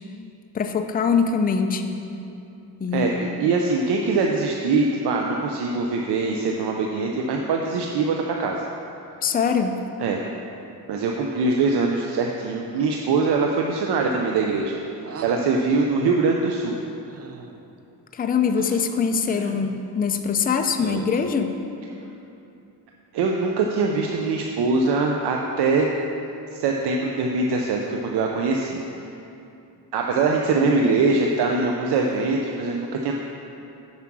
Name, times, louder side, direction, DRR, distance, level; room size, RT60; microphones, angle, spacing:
voice 1, 0.5-2.0 2.8-3.2 9.2-9.8 18.1-21.5, left 6 dB, 25° left, 6 dB, 0.5 m, -23 dB
voice 2, 2.9-8.7 10.0-10.2 10.9-14.8 15.2-16.7 23.1-25.9 26.5-28.8 29.9-33.1, right 3 dB, 80° right, 1 dB, 0.7 m, -23 dB
sound 1, 15.0-15.6 17.1-17.6 18.6-18.9 19.3-19.8 20.8-21.3, right 5 dB, 40° right, 0.6 m, -38 dB
7.5 x 5.8 x 6.0 m, 2.8 s
cardioid pair, 115°, 39 cm